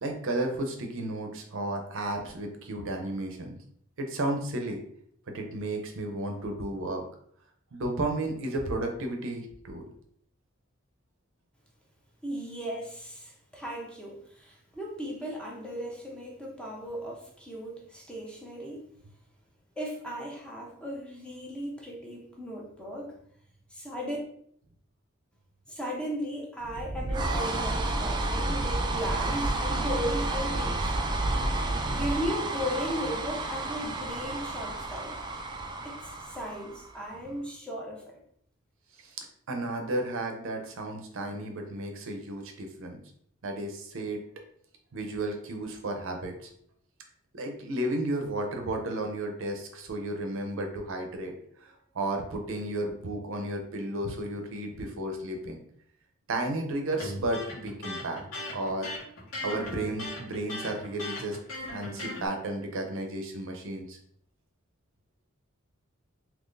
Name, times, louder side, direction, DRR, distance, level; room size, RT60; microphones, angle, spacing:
voice 1, 0.0-3.6 4.0-4.8 5.3-7.0 7.7-9.9 39.0-43.0 43.4-44.2 44.9-46.5 47.3-51.3 51.6-55.6 56.3-58.2 58.5-58.9 59.4-61.4 61.7-64.0, right 1 dB, 65° right, 3 dB, 0.6 m, -33 dB
voice 2, 12.2-18.9 19.8-23.2 23.7-24.2 25.7-35.2 35.8-38.2, equal, 5° left, -3 dB, 0.7 m, -36 dB
sound 1, 26.6-37.1, right 2 dB, 20° right, 0.3 m, -31 dB
Electric guitar, 57.0-62.3, left 1 dB, 90° left, 1.4 m, -37 dB
3.7 x 2.9 x 2.5 m, 0.65 s
head